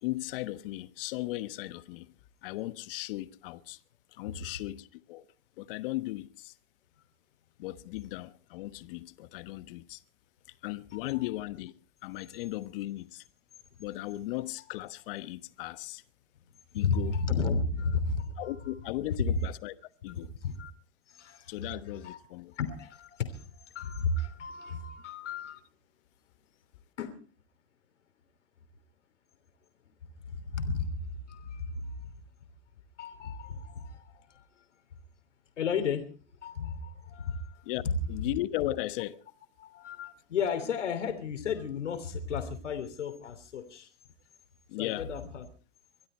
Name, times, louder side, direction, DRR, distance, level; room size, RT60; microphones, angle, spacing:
voice 1, 0.0-2.1 2.4-3.8 4.1-5.3 5.6-6.5 7.6-10.0 10.6-11.7 12.0-13.2 13.8-16.0 16.7-17.1 18.4-19.7 20.0-20.3 21.5-22.5 37.6-37.8 38.1-39.2 44.7-45.1, left 17 dB, 50° left, 1.2 m, -36 dB
voice 2, 10.9-11.3 16.7-18.5 20.3-20.7 21.1-22.2 22.6-25.6 27.0-27.2 30.3-32.1 33.0-34.4 35.6-36.1 36.4-38.0 39.6-43.9 44.8-45.5, left 5 dB, 80° left, 3.2 m, -34 dB
24.0 x 13.0 x 4.4 m
hypercardioid pair, 130°, 35 cm